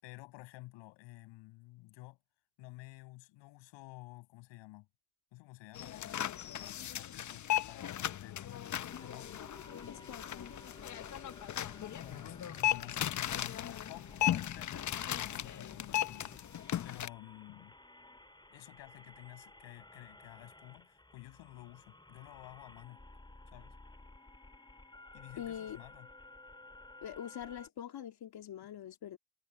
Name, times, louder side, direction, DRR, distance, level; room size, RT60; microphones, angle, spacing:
voice 1, 0.0-2.2 2.6-4.9 5.3-9.4 11.8-16.3 16.8-17.8 18.5-23.0 23.5-23.7 25.1-26.1, left 20 dB, 80° left, 6.2 m, -52 dB
sound 1, 5.7-17.1, left 12 dB, 40° left, 0.9 m, -37 dB
sound 2, 8.9-27.7, left 2 dB, 10° left, 2.2 m, -55 dB
voice 2, 9.9-10.5 25.4-25.8 27.0-29.2, left 10 dB, 60° left, 2.8 m, -44 dB
supercardioid pair, 65°, 44 cm